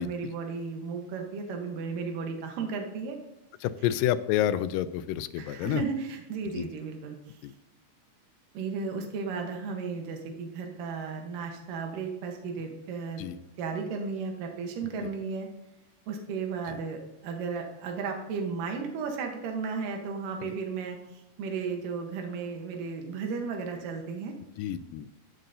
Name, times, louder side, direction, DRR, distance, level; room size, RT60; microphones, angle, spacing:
voice 1, 0.0-3.2 5.4-7.4 8.5-13.3 13.6-15.5 16.1-24.3, right 5 dB, 80° right, 3 dB, 2.8 m, -34 dB
voice 2, 3.6-5.8 6.6-6.7 7.4-7.5 13.2-13.4 16.7-16.8 20.4-20.5 24.6-25.1, left 11 dB, 90° left, 13 dB, 2.2 m, -29 dB
14.5 x 7.7 x 2.7 m, 0.90 s
omnidirectional pair, 3.9 m